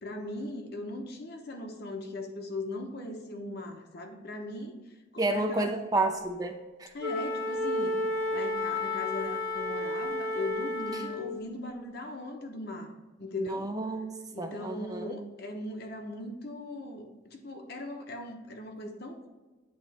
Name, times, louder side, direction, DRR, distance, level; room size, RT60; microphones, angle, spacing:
voice 1, 0.0-4.8 5.1-5.7 6.9-8.0 8.3-13.7 14.3-19.3, left 2 dB, 50° left, 4 dB, 0.9 m, -39 dB
voice 2, 5.2-6.5 6.8-6.9 13.4-14.1 14.4-15.2, right 2 dB, 20° right, 5 dB, 0.4 m, -30 dB
Wind instrument woodwind instrument, 7.0-11.4, left 1 dB, 85° right, 1.2 m, -31 dB
8.7 x 3.1 x 4.2 m, 1.2 s
head